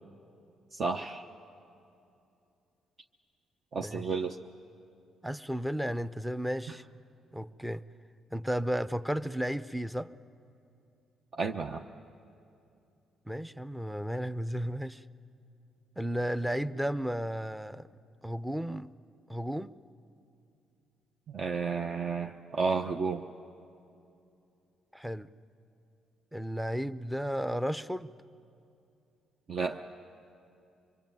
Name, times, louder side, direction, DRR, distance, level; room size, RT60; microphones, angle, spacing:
voice 1, 0.7-1.3 3.7-4.4 11.4-11.8 21.3-23.2 29.5-29.8, right 5 dB, 50° right, 3 dB, 0.9 m, -32 dB
voice 2, 3.8-4.2 5.2-6.8 7.3-7.8 8.3-10.1 13.3-15.0 16.0-17.9 18.2-18.9 19.3-19.7 24.9-25.3 26.3-28.1, equal, 5° right, 14 dB, 0.6 m, -33 dB
25.0 x 23.0 x 9.2 m, 2.6 s
cardioid pair, 90°, 0 cm